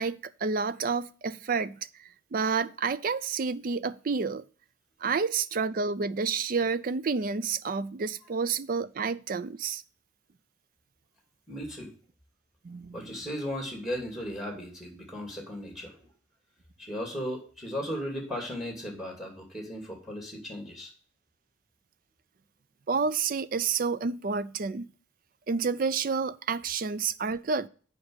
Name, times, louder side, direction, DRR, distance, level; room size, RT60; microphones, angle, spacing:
voice 1, 0.0-1.8 2.3-4.4 5.0-9.8 12.6-13.1 22.9-24.9 25.5-27.7, right 5 dB, 45° right, 0.4 m, -29 dB
voice 2, 11.5-11.9 12.9-16.1 16.8-20.9, equal, ahead, 2.5 m, -36 dB
7.3 x 5.2 x 6.3 m
head